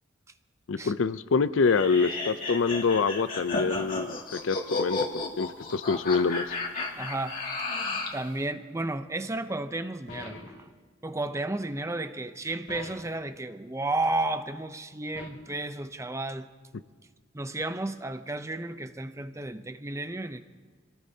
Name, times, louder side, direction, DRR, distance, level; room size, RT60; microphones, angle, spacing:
voice 1, 0.7-6.4, left 4 dB, 80° left, 14 dB, 0.5 m, -26 dB
sound 1, 1.7-8.2, left 3 dB, 45° left, 2.3 m, -33 dB
voice 2, 7.0-7.4 8.1-10.6 11.0-16.5 17.3-20.4, right 2 dB, 15° right, 10 dB, 0.6 m, -32 dB
sound 2, 10.1-10.7 12.7-13.2 15.1-15.6, left 2 dB, 60° left, 2.4 m, -44 dB
26.5 x 18.5 x 2.8 m, 1.5 s
head